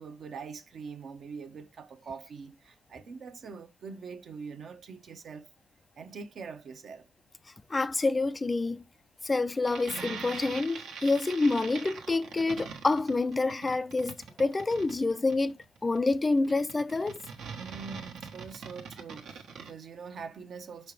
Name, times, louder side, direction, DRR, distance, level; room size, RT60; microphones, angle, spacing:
voice 1, 0.0-5.5 6.0-7.1 17.5-20.9, right 5 dB, 50° right, 1.0 m, -43 dB
voice 2, 7.7-8.8 9.2-15.5 15.8-17.2, left 3 dB, 20° left, 0.4 m, -27 dB
sound 1, 9.6-19.7, right 5 dB, 65° right, 1.4 m, -42 dB
5.8 x 5.5 x 3.3 m
cardioid pair, 90°, 0 cm